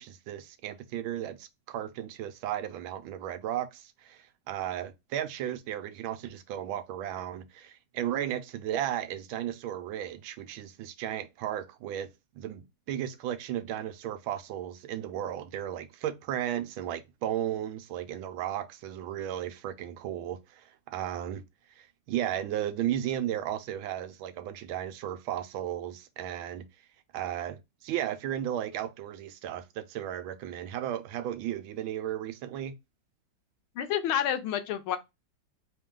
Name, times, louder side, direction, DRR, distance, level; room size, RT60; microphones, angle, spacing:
voice 1, 0.0-12.1 12.3-21.4 21.8-26.7 27.1-32.7, right 11 dB, 90° right, 1.4 m, -35 dB
voice 2, 33.8-35.0, left 10 dB, 90° left, 1.6 m, -29 dB
4.4 x 3.0 x 3.7 m
omnidirectional pair, 2.2 m